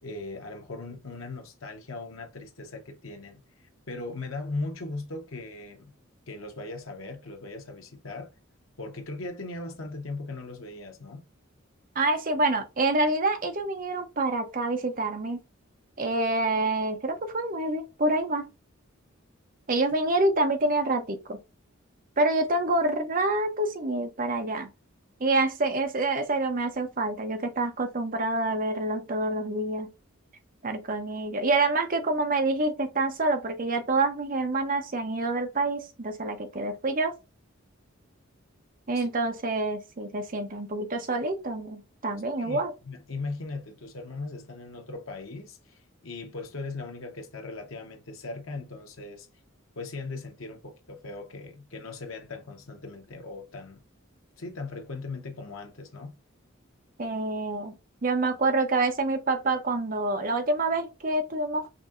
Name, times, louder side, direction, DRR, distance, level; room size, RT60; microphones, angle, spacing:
voice 1, 0.0-3.4 3.9-5.9 6.3-8.3 8.8-11.2 38.9-39.1 42.4-49.3 49.7-53.8 54.4-56.1, left 3 dB, 85° left, 0.9 m, -38 dB
voice 2, 12.0-15.4 16.0-18.4 19.7-21.4 22.2-24.7 25.2-29.9 30.6-37.2 38.9-42.7 57.0-57.7 58.0-61.7, right 2 dB, 45° right, 0.8 m, -27 dB
5.1 x 2.7 x 2.4 m
head